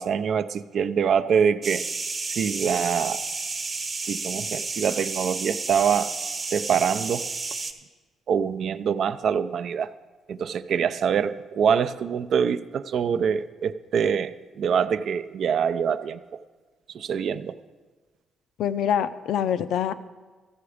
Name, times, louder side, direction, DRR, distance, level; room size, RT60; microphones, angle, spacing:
voice 1, 0.0-1.8 2.2-3.3 4.0-6.1 6.4-7.3 8.3-9.9 10.3-16.4 16.9-17.6, right 7 dB, 65° right, 13 dB, 0.4 m, -25 dB
sound 1, 1.6-7.7, right 4 dB, 35° right, 1.0 m, -31 dB
voice 2, 18.6-19.9, left 9 dB, 80° left, 13 dB, 0.5 m, -25 dB
14.0 x 6.9 x 4.9 m, 1.3 s
cardioid pair, 90°, 0 cm